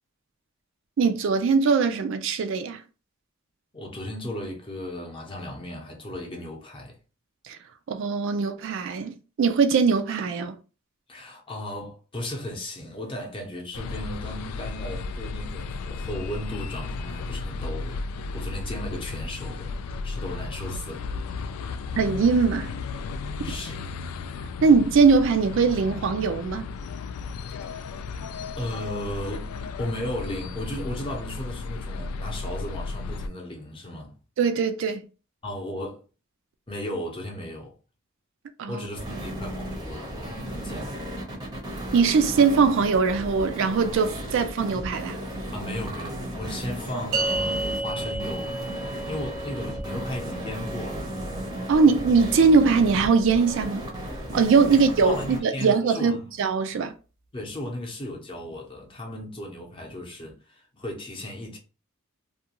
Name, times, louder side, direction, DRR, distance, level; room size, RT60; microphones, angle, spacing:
voice 1, 1.0-2.8 7.5-7.6 7.9-10.6 22.0-22.7 24.6-26.7 34.4-35.1 38.6-38.9 41.9-45.2 51.7-53.9 54.3-56.9, right 5 dB, 60° right, 0.3 m, -21 dB
voice 2, 3.7-7.0 11.1-18.0 18.3-19.7 20.0-21.1 23.4-23.8 27.7-27.9 28.5-29.5 29.8-34.2 35.4-36.0 36.7-37.7 38.7-41.0 45.5-48.6 49.1-51.1 54.7-54.8 55.0-56.3 57.3-61.6, left 1 dB, 25° left, 0.7 m, -35 dB
sound 1, 13.7-33.3, left 4 dB, 85° left, 0.3 m, -34 dB
sound 2, 38.9-55.4, right 1 dB, 20° right, 0.6 m, -35 dB
sound 3, 47.1-53.7, right 2 dB, 75° right, 0.8 m, -34 dB
2.4 x 2.2 x 2.8 m
head